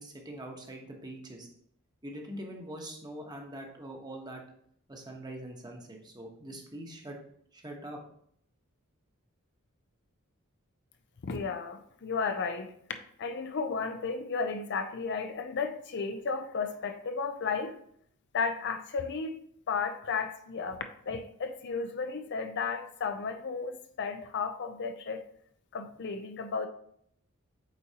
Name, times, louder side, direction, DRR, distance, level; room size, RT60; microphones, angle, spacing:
voice 1, 0.0-1.5 2.0-4.4 4.9-7.2 7.5-8.0, right 1 dB, 20° right, 1 dB, 1.0 m, -43 dB
voice 2, 11.2-12.7 13.2-17.8 18.3-19.4 19.7-25.2 25.7-26.7, left 5 dB, 55° left, 7 dB, 0.5 m, -33 dB
8.2 x 4.2 x 2.8 m, 0.66 s
head